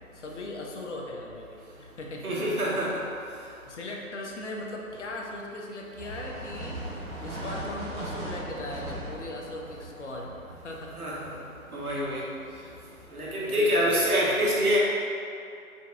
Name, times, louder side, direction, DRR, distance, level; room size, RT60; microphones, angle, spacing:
voice 1, 0.1-2.3 3.7-11.0 13.4-14.3, left 1 dB, 55° left, 0 dB, 0.7 m, -39 dB
voice 2, 2.2-3.0 11.0-11.3 11.7-12.2 13.1-14.8, equal, 80° right, -5 dB, 1.3 m, -26 dB
sound 1, 6.0-14.0, right 1 dB, 60° right, 1.2 m, -40 dB
5.2 x 2.3 x 3.7 m, 2.5 s
figure-of-eight pair, 150°, 43 cm